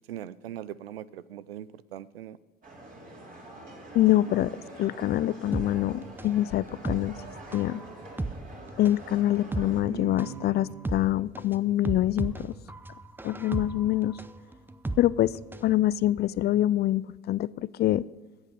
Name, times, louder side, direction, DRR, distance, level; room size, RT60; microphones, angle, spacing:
voice 1, 0.1-2.4 9.8-11.1, right 11 dB, 85° right, 19 dB, 0.5 m, -41 dB
sound 1, 2.6-9.8, right 2 dB, 30° right, 3.9 m, -45 dB
voice 2, 3.9-4.5 4.8-7.2 7.5-7.8 8.8-12.5 13.2-14.2 15.0-18.0, left 14 dB, 35° left, 20 dB, 0.4 m, -25 dB
sound 2, 5.5-15.7 16.0-16.1, right 2 dB, 5° right, 0.7 m, -36 dB
14.0 x 8.1 x 6.9 m, 1.3 s
hypercardioid pair, 65°, 29 cm